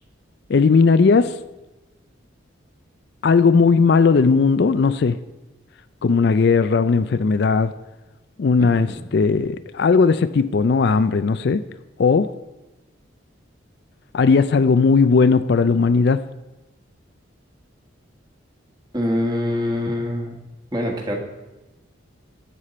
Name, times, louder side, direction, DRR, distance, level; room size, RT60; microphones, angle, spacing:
voice 1, 0.5-1.3 3.2-5.2 6.0-7.7 8.4-11.6 12.0-12.3 14.1-16.2, left 4 dB, 55° left, 13 dB, 0.4 m, -17 dB
voice 2, 8.6-9.0 18.9-20.4 20.7-21.2, left 1 dB, 20° right, 1 dB, 1.7 m, -24 dB
12.5 x 8.4 x 4.2 m, 1.1 s
head